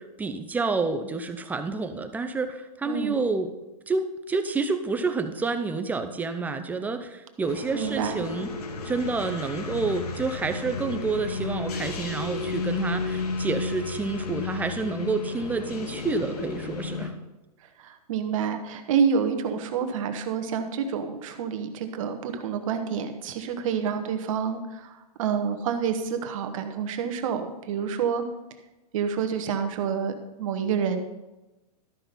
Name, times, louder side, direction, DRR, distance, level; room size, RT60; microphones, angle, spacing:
voice 1, 0.0-3.5 3.9-8.5 8.8-17.1, right 4 dB, 10° right, 8 dB, 0.5 m, -29 dB
voice 2, 2.8-3.2 7.7-8.2 17.8-28.2 28.9-31.0, right 7 dB, 55° right, 7 dB, 1.3 m, -28 dB
sound 1, 7.4-17.1, left 3 dB, 70° left, 1.6 m, -33 dB
13.0 x 5.8 x 5.3 m, 1.0 s
hypercardioid pair, 140°, 20 cm